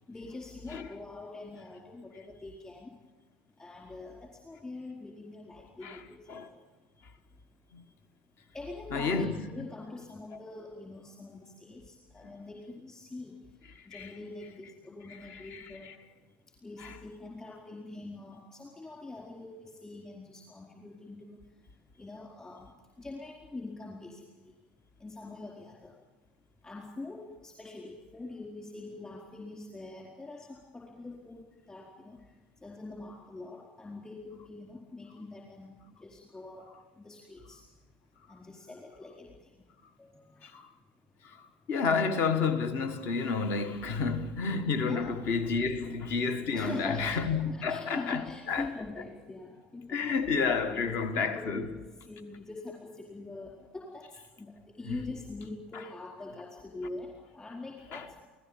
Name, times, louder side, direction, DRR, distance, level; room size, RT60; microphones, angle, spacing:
voice 1, 0.1-2.9 3.6-6.3 8.5-13.4 13.9-15.9 16.6-21.4 22.0-22.7 23.0-24.3 25.0-26.0 26.6-32.3 32.6-36.7 37.0-37.6 38.3-39.5 40.0-40.5 44.5-45.2 46.5-47.2 47.4-50.2 50.7-51.6 52.0-58.2, left 2 dB, 20° left, 4.5 m, -44 dB
voice 2, 8.9-9.4 13.7-14.1 15.1-15.9 16.8-17.0 40.4-40.7 41.2-48.7 49.9-51.7 54.8-55.0 55.7-55.8 57.9-58.0, left 5 dB, 50° left, 1.5 m, -31 dB
28.0 x 17.5 x 7.3 m
figure-of-eight pair, 65°, 5 cm